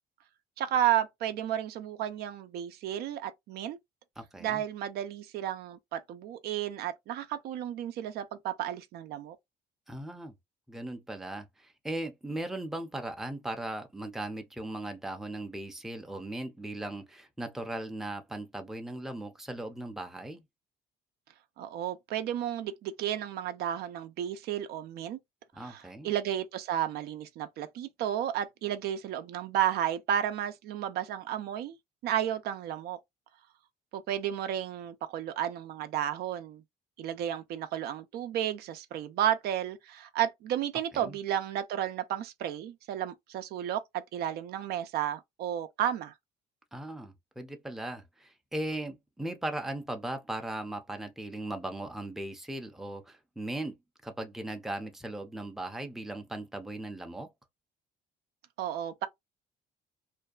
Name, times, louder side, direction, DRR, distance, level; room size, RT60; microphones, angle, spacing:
voice 1, 0.6-3.8 4.4-9.4 21.6-25.2 25.6-31.8 32.0-33.0 33.9-36.6 37.0-46.1 58.6-59.1, right 11 dB, 70° right, 0.4 m, -32 dB
voice 2, 4.2-4.6 9.9-10.3 10.7-20.4 25.5-26.1 40.9-41.2 46.7-53.8 54.0-57.3, right 1 dB, ahead, 0.5 m, -38 dB
2.5 x 2.2 x 2.3 m
cardioid pair, 110°, 17 cm